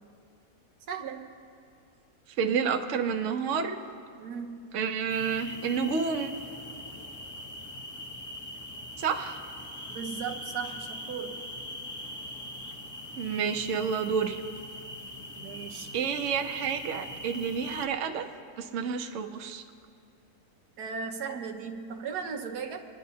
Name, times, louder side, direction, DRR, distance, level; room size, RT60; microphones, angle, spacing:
voice 1, 0.9-1.3 4.2-4.7 9.9-11.4 15.4-15.9 20.8-22.9, right 6 dB, 90° right, 3 dB, 1.5 m, -37 dB
voice 2, 2.4-3.8 4.7-6.3 9.0-9.4 13.2-14.4 15.9-18.3 18.6-19.6, right 6 dB, 60° right, 5 dB, 1.0 m, -29 dB
sound 1, 5.1-17.9, left 1 dB, 20° left, 0.6 m, -42 dB
29.5 x 10.5 x 2.8 m, 2.3 s
omnidirectional pair, 1.7 m